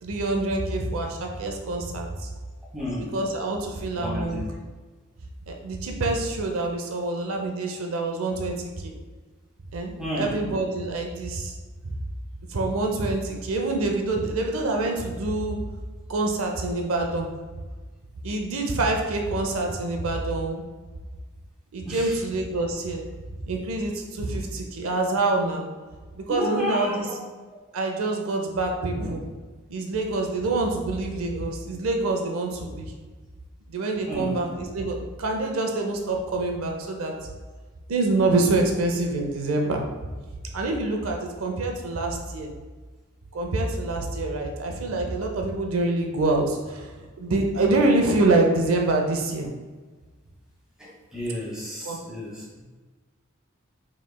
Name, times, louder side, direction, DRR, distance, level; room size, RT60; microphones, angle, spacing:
voice 1, 0.0-2.3 3.1-4.4 5.5-8.9 9.7-11.6 11.8-11.9 12.5-15.6 16.1-17.3 18.2-20.6 21.7-23.0 23.4-25.7 26.1-27.1 27.7-29.2 29.7-32.9 33.7-37.3 37.9-39.9 40.5-42.5 43.3-49.5 51.8-52.0, right 2 dB, 80° right, 2 dB, 0.5 m, -26 dB
voice 2, 2.7-3.1 4.0-4.4 10.0-10.3 21.9-22.2 26.3-27.2 31.2-31.4 34.1-34.3 50.8-52.6, left 1 dB, 5° right, -7 dB, 1.3 m, -32 dB
5.5 x 3.1 x 2.2 m, 1.3 s
head